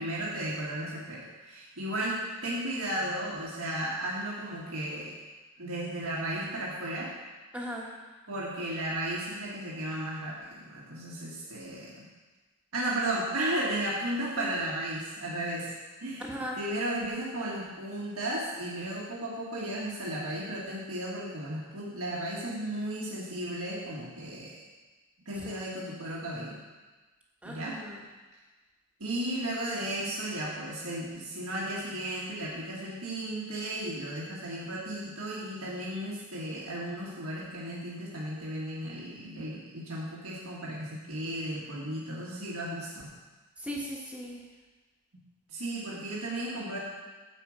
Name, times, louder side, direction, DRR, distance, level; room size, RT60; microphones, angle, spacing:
voice 1, 0.0-5.2 5.6-7.1 8.3-12.1 12.7-15.7 16.0-16.3 16.5-24.6 25.2-26.6 27.4-27.8 29.0-43.1 45.5-46.8, right 1 dB, 90° right, -5 dB, 1.6 m, -34 dB
voice 2, 7.5-7.9 14.4-14.5 16.3-16.6 25.4-25.6 27.4-28.0 43.6-44.4, equal, 5° right, -3 dB, 1.2 m, -37 dB
10.0 x 4.6 x 7.4 m, 1.3 s
head